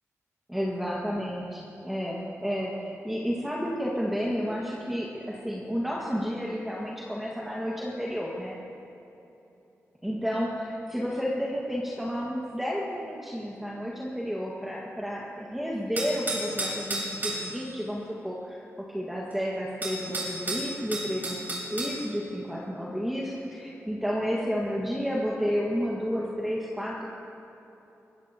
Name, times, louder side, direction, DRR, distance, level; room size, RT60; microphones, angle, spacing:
voice 1, 0.5-8.6 10.0-18.6 18.9-27.0, equal, 5° right, -5 dB, 1.8 m, -31 dB
sound 1, 16.0-17.5 19.3-19.4 19.8-22.0, right 1 dB, 35° right, 4.2 m, -31 dB
22.5 x 16.5 x 2.9 m, 3.0 s
wide cardioid pair, 100°, 5 cm